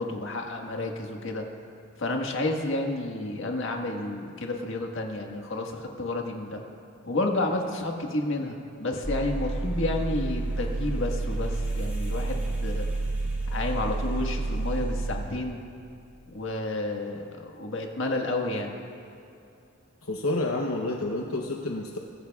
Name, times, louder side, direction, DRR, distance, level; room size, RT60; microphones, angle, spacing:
voice 1, 0.0-1.4 2.0-6.6 7.0-12.9 13.5-15.6 16.3-17.3 17.6-18.7, left 2 dB, 65° left, 2 dB, 1.6 m, -30 dB
sound 1, 9.0-15.2, right 2 dB, 5° right, 3.4 m, -29 dB
voice 2, 20.0-22.0, left 2 dB, 90° left, 1 dB, 0.9 m, -29 dB
23.0 x 16.0 x 2.4 m, 2.8 s
head